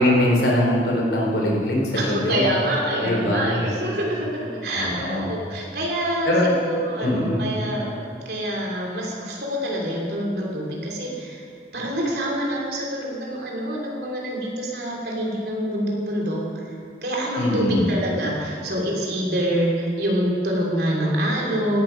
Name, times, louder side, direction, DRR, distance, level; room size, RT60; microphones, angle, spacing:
voice 1, 0.0-2.5 3.0-3.7 4.7-5.3 6.3-6.5 7.0-7.5 17.4-17.9, left 1 dB, 75° left, -2 dB, 3.6 m, -22 dB
voice 2, 1.9-6.3 6.6-7.9 8.2-11.4 11.7-16.4 17.0-21.8, equal, 65° right, -2 dB, 3.4 m, -26 dB
16.5 x 12.0 x 5.2 m, 2.3 s
head